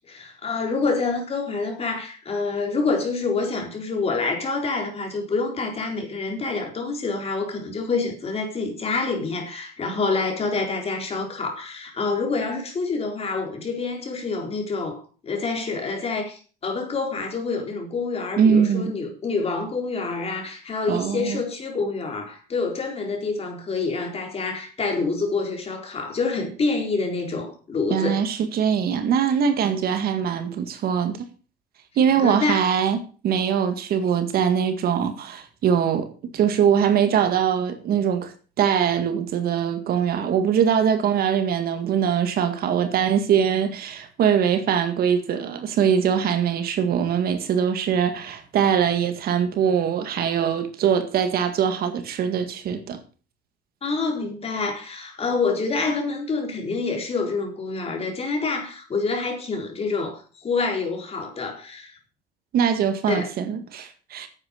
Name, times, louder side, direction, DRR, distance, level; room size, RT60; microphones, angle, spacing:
voice 1, 0.1-28.2 32.2-32.6 53.8-62.0 63.1-63.3, left 4 dB, 35° left, 4.2 m, -27 dB
voice 2, 18.4-18.9 20.9-21.4 27.9-31.3 32.0-38.3 38.6-53.0 62.5-64.3, right 8 dB, 65° right, 1.9 m, -22 dB
9.6 x 8.4 x 6.5 m
cardioid pair, 110°, 17 cm